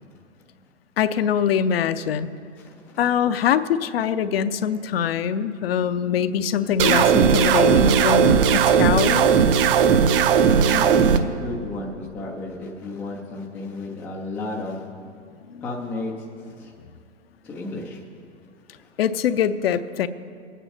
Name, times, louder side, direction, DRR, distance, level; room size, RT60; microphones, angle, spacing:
voice 1, 1.0-2.3 3.0-9.3 15.5-15.6 19.0-20.1, left 8 dB, 55° left, 12 dB, 0.6 m, -23 dB
voice 2, 2.6-3.0 9.7-9.8 10.1-10.3 10.7-14.9 15.6-16.1 16.4-16.7 17.4-18.0 18.8-18.9, left 2 dB, 5° left, -1 dB, 0.3 m, -33 dB
sound 1, 6.8-11.2, right 7 dB, 50° right, 0.7 m, -17 dB
21.5 x 8.9 x 3.3 m, 2.2 s
figure-of-eight pair, 115°, 36 cm